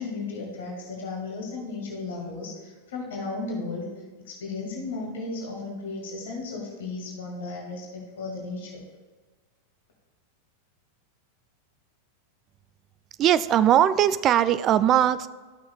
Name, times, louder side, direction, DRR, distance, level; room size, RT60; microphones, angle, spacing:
voice 1, 0.0-3.9 4.2-8.8, left 3 dB, 60° left, -1 dB, 1.8 m, -35 dB
voice 2, 13.2-15.3, right 11 dB, 30° right, 14 dB, 0.3 m, -20 dB
13.5 x 6.3 x 2.2 m, 1.4 s
figure-of-eight pair, 90°, 0 cm